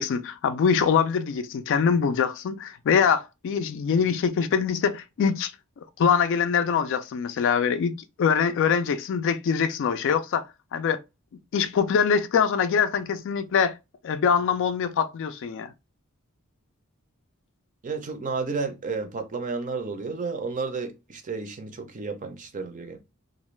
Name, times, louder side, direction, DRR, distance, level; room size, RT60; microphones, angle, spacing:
voice 1, 0.0-5.5 6.0-10.5 10.7-11.0 11.5-13.7 14.0-15.7, left 6 dB, 60° left, 0.3 m, -23 dB
voice 2, 17.8-23.0, right 4 dB, 35° right, 0.5 m, -32 dB
2.5 x 2.2 x 3.1 m
head